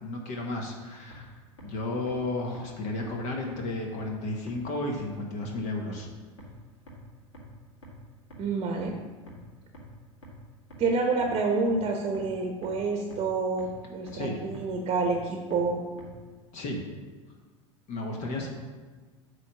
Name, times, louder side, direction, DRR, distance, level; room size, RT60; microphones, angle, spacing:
voice 1, 0.0-6.1 14.1-14.3 16.5-16.8 17.9-18.5, left 2 dB, 45° left, 1 dB, 1.1 m, -33 dB
sound 1, 1.1-1.2 1.6-1.7 2.1-2.2 2.5-2.6 3.0-3.1 3.5-3.6 4.0-4.1 4.5-4.6 4.9-5.0 5.4-5.5 5.9-6.0 6.4-6.5 6.9-7.0 7.3-7.4 7.8-7.9 8.3-8.4 8.8-8.9 9.3-9.4 9.7-9.8 10.2-10.3 10.7-10.8 11.2-11.3 11.7-11.8 12.1-12.2 12.6-12.7 13.1-13.2 13.6-13.7 14.1-14.2 14.5-14.6 15.0-15.1 15.5-15.6 16.0-16.1, right 1 dB, 75° left, 2.0 m, -46 dB
voice 2, 8.4-8.9 10.8-15.8, right 3 dB, 35° right, 3 dB, 0.9 m, -28 dB
8.2 x 3.3 x 6.4 m, 1.4 s
figure-of-eight pair, 80°, 16 cm